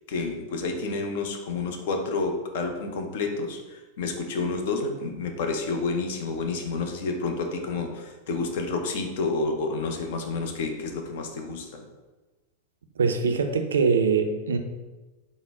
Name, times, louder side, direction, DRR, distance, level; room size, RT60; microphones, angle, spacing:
voice 1, 0.1-11.8, left 3 dB, 55° left, 4 dB, 0.5 m, -29 dB
voice 2, 13.0-14.6, right 5 dB, 70° right, 7 dB, 0.3 m, -23 dB
3.8 x 2.0 x 3.4 m, 1.2 s
figure-of-eight pair, 90°, 0 cm